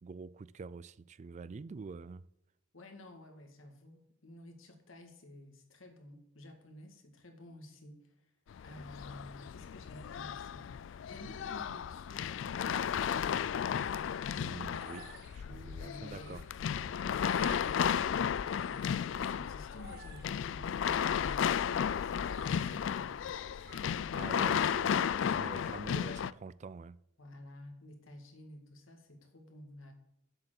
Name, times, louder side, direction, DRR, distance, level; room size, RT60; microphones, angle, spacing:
voice 1, 0.0-2.3 14.4-16.5 24.1-27.0, right 4 dB, 35° right, 0.3 m, -46 dB
voice 2, 2.7-8.3 8.6-13.5 15.4-18.9 19.1-23.8 24.1-24.3 27.2-29.9, left 1 dB, 80° left, 2.0 m, -53 dB
sound 1, 8.5-26.3, left 8 dB, 65° left, 0.3 m, -34 dB
sound 2, 13.2-24.4, right 2 dB, 55° right, 1.4 m, -56 dB
7.8 x 6.7 x 7.6 m
head